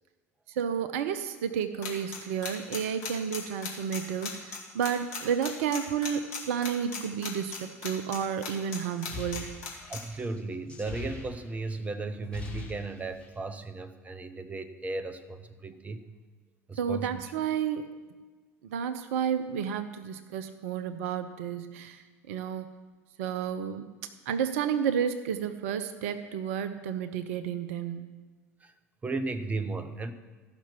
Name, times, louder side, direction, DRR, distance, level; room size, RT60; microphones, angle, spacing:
voice 1, 0.5-9.7 16.8-17.9 18.6-22.7 23.2-28.1, right 8 dB, 60° right, 10 dB, 0.5 m, -31 dB
sound 1, 1.8-8.8 9.0-10.0, left 6 dB, 55° left, 2.3 m, -36 dB
sound 2, 8.8-11.8 12.1-13.4, left 5 dB, 15° left, 2.2 m, -43 dB
voice 2, 9.9-16.0 16.7-17.2 28.6-28.7 29.0-30.1, right 3 dB, 15° right, 10 dB, 0.7 m, -35 dB
14.0 x 5.9 x 5.8 m, 1.3 s
figure-of-eight pair, 70°, 8 cm